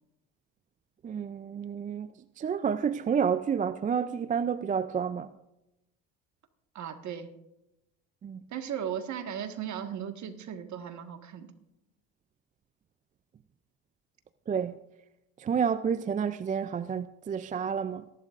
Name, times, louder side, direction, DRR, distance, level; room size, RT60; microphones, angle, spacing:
voice 1, 1.0-2.1 2.4-5.3 8.2-8.4 14.5-14.8 15.4-18.0, right 7 dB, 20° right, 0.4 m, -29 dB
voice 2, 6.8-7.3 8.5-11.5, right 9 dB, 50° right, 1.6 m, -36 dB
23.0 x 11.5 x 2.5 m
supercardioid pair, 90°, 38 cm